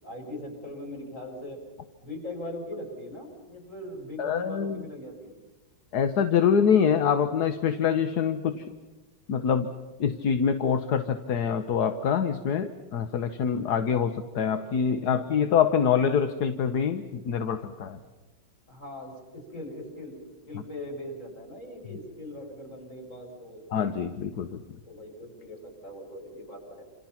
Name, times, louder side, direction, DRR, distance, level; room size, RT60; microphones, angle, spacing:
voice 1, 0.0-1.6 2.0-5.3 15.1-15.2 18.7-23.6 24.8-26.8, left 1 dB, 40° left, 0 dB, 6.9 m, -40 dB
voice 2, 4.2-4.9 5.9-8.7 9.3-9.7 10.0-18.0 23.7-24.6, left 7 dB, 60° left, 9 dB, 1.5 m, -25 dB
28.0 x 27.5 x 5.9 m, 1.2 s
omnidirectional pair, 2.2 m